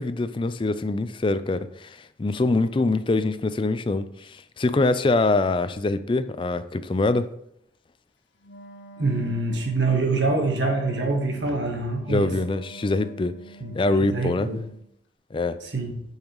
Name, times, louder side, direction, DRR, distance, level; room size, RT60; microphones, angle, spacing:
voice 1, 0.0-7.3 12.1-13.4 13.7-14.5 15.3-15.6, left 2 dB, 30° left, 0.4 m, -24 dB
Wind instrument woodwind instrument, 8.4-14.9, right 3 dB, 80° left, 0.8 m, -46 dB
voice 2, 9.0-12.3 13.6-13.7 14.0-14.6 15.7-15.9, right 3 dB, 85° right, 1.4 m, -25 dB
8.7 x 5.6 x 3.1 m
head